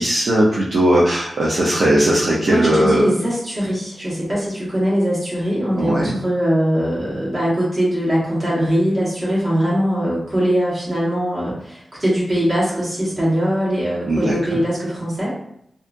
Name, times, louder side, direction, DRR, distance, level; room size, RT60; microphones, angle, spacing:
voice 1, 0.0-3.1 5.8-6.2 14.1-14.6, right 1 dB, 65° right, -7 dB, 0.5 m, -18 dB
voice 2, 2.5-15.3, equal, 35° right, -8 dB, 1.3 m, -21 dB
2.7 x 2.3 x 2.5 m, 0.71 s
wide cardioid pair, 145°, 0 cm